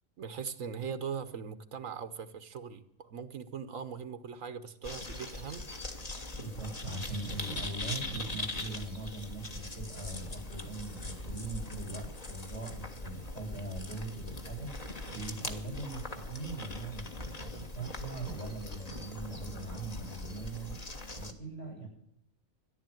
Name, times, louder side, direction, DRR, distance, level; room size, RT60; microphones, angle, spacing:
voice 1, 0.2-5.7, right 6 dB, 75° right, 10 dB, 1.4 m, -40 dB
sound 1, 4.8-21.3, left 2 dB, 30° left, 1.5 m, -41 dB
voice 2, 6.4-20.7 21.1-21.9, right 3 dB, 60° left, -1 dB, 8.4 m, -41 dB
14.0 x 11.0 x 9.1 m, 0.74 s
omnidirectional pair, 1.4 m